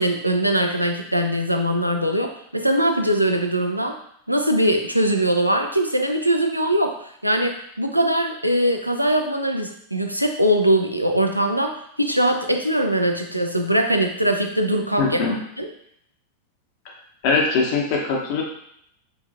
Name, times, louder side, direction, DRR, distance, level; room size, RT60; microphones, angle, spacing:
voice 1, 0.0-3.9 4.3-15.2 15.6-15.7, right 1 dB, 90° right, 4 dB, 0.3 m, -21 dB
voice 2, 15.0-15.4 17.2-18.4, left 4 dB, 45° left, 0 dB, 0.7 m, -21 dB
3.0 x 2.4 x 2.4 m, 0.71 s
figure-of-eight pair, 90°, 0 cm